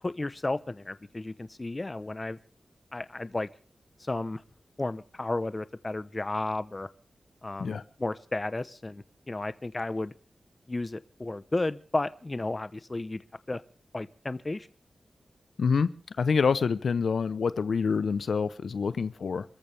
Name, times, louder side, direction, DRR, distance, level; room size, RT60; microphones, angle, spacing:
voice 1, 0.0-2.4 2.9-3.5 4.0-4.4 4.8-6.9 7.4-10.1 10.7-13.2 13.5-13.6 13.9-14.7, left 2 dB, 25° left, 15 dB, 0.8 m, -33 dB
voice 2, 15.6-15.9 16.2-19.4, left 5 dB, 80° left, 15 dB, 0.7 m, -26 dB
27.5 x 14.0 x 3.4 m, 0.37 s
wide cardioid pair, 125°, 0 cm